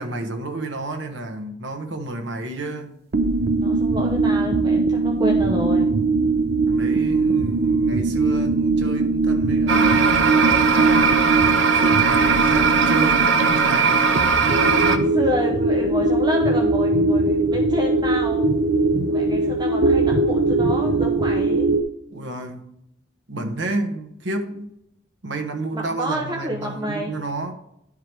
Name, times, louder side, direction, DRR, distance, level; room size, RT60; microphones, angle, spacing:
voice 1, 0.0-2.9 6.7-11.2 11.7-14.2 22.1-22.7 23.3-24.7 25.2-27.5, right 2 dB, 70° right, 1.1 m, -30 dB
sound 1, 3.1-21.8, right 3 dB, 55° right, 0.5 m, -21 dB
voice 2, 3.6-5.9 14.8-18.4 19.1-21.7 25.7-27.1, equal, 20° right, 0.7 m, -29 dB
sound 2, 9.7-15.0, right 5 dB, 85° right, 0.7 m, -19 dB
11.0 x 4.7 x 3.4 m
head